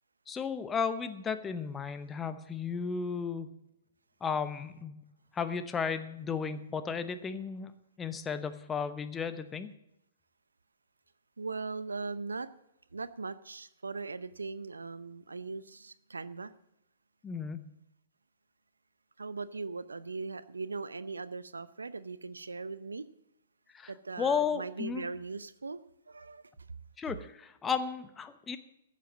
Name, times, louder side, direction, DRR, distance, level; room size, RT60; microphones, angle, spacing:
voice 1, 0.3-3.5 4.2-5.0 5.3-7.7 8.0-9.7 17.2-17.7 23.7-23.9 24.2-25.1 27.0-28.6, left 6 dB, 15° left, 10 dB, 0.9 m, -34 dB
voice 2, 11.4-12.5 12.9-16.5 19.2-23.1 23.9-26.5, right 4 dB, 80° right, 16 dB, 0.6 m, -39 dB
14.5 x 7.6 x 7.3 m, 0.83 s
figure-of-eight pair, 115°, 0 cm